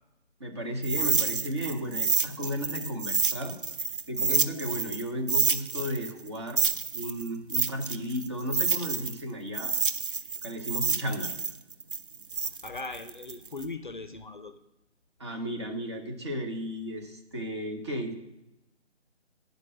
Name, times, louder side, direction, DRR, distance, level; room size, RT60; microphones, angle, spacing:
voice 1, 0.4-3.5 4.1-6.6 6.9-9.7 10.4-11.3 15.2-18.2, equal, 25° right, 2 dB, 1.0 m, -34 dB
sound 1, 0.8-5.0 5.3-9.2 9.5-13.6, right 5 dB, 50° right, 0.5 m, -28 dB
voice 2, 12.3-14.5, left 3 dB, 45° left, 9 dB, 0.6 m, -39 dB
9.4 x 5.2 x 6.4 m, 0.94 s
figure-of-eight pair, 160°, 35 cm